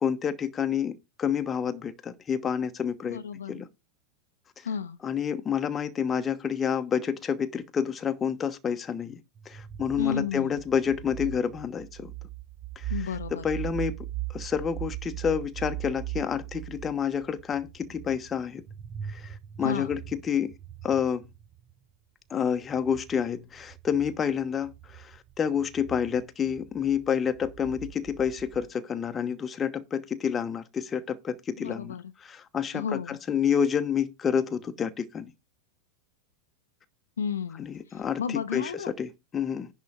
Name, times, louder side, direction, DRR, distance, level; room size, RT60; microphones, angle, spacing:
voice 1, 0.0-3.2 3.5-3.7 5.0-9.2 9.5-12.1 12.8-12.9 13.3-14.0 14.3-18.6 19.1-20.5 20.8-21.2 22.3-32.0 32.2-35.3 37.6-39.7, left 7 dB, 20° left, 1.1 m, -29 dB
voice 2, 3.0-3.5 4.6-5.0 10.0-10.6 12.9-13.4 19.6-20.0 31.6-32.0 32.7-33.2 37.2-37.7 38.2-38.9, left 7 dB, 65° left, 0.8 m, -32 dB
sound 1, 9.4-21.7 22.6-28.7, right 14 dB, 30° right, 0.7 m, -40 dB
10.5 x 3.7 x 7.4 m
figure-of-eight pair, 90°, 0 cm